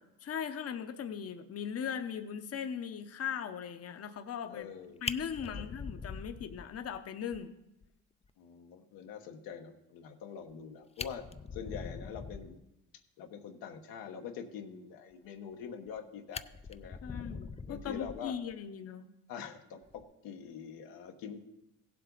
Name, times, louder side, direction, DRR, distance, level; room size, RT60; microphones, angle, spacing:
voice 1, 0.2-4.7 5.0-7.5 11.7-11.9 17.0-19.1, left 8 dB, 45° left, 8 dB, 0.9 m, -39 dB
voice 2, 4.5-5.1 5.4-5.7 8.4-11.2 11.5-12.6 13.2-17.0 17.7-18.3 19.3-21.5, left 7 dB, 85° left, 5 dB, 1.3 m, -45 dB
Fire, 4.6-4.7 5.0-7.0 7.3-7.4 7.8-7.9 8.2-8.3 10.5-10.6 10.9-12.6 15.4-16.0 16.3-18.5 19.8-20.0, left 5 dB, 20° left, 0.4 m, -42 dB
16.0 x 7.7 x 4.0 m, 0.92 s
cardioid pair, 80°, 34 cm